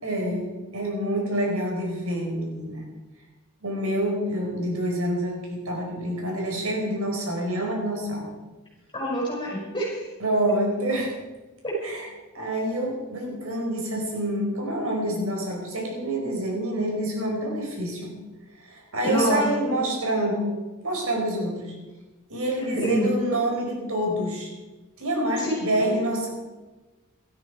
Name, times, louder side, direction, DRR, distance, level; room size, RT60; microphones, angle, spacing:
voice 1, 0.0-2.9 3.6-8.3 10.2-11.1 11.8-12.1 12.3-18.1 18.6-20.5 20.8-21.7 22.3-24.5 25.0-26.3, right 1 dB, 75° right, 0 dB, 4.9 m, -27 dB
voice 2, 8.9-10.1 11.6-11.7 19.0-19.8 22.6-23.1 25.3-26.0, equal, 20° left, -4 dB, 6.3 m, -27 dB
18.0 x 13.0 x 4.9 m, 1.2 s
head